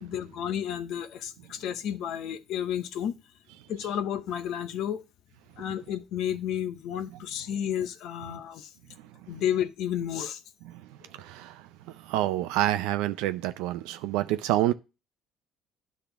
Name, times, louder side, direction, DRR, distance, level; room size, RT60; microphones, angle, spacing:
voice 1, 0.0-3.1 3.7-5.0 5.6-8.7 9.3-10.4, left 10 dB, 70° left, 0.7 m, -31 dB
voice 2, 9.0-9.4 10.6-14.7, right 14 dB, 85° right, 0.4 m, -29 dB
10.0 x 3.7 x 5.8 m
supercardioid pair, 85°, 0 cm